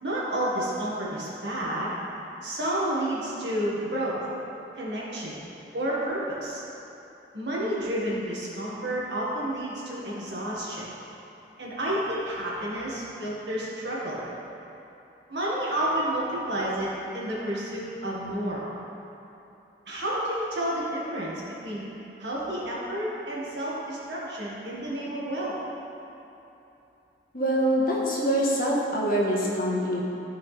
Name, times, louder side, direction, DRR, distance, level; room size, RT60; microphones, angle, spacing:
voice 1, 0.0-1.9 2.4-4.2 4.8-5.4 5.7-6.6 7.3-10.9 11.6-14.2 15.3-18.6 19.9-21.8 22.2-25.6, right 1 dB, 75° right, -6 dB, 1.9 m, -30 dB
voice 2, 27.3-30.0, equal, 50° left, -4 dB, 1.4 m, -24 dB
13.0 x 4.9 x 3.4 m, 2.9 s
head